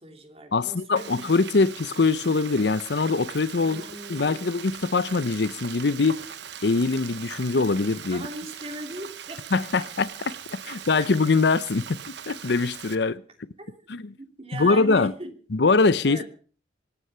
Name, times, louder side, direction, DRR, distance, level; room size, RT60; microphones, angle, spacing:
voice 1, 0.0-1.2 3.6-4.8 8.1-9.5 9.8-9.9 10.6-11.1 13.7-13.8 14.2-15.3 16.0-16.3, right 2 dB, 35° right, 2.9 m, -39 dB
voice 2, 0.5-3.8 4.1-6.2 6.6-8.2 9.5-10.1 10.5-12.0 12.3-13.2 13.9-14.0 14.5-15.1 15.5-16.3, left 3 dB, 60° left, 0.7 m, -23 dB
Frying (food), 1.0-13.0, right 8 dB, 65° right, 1.0 m, -41 dB
25.0 x 9.8 x 5.6 m
head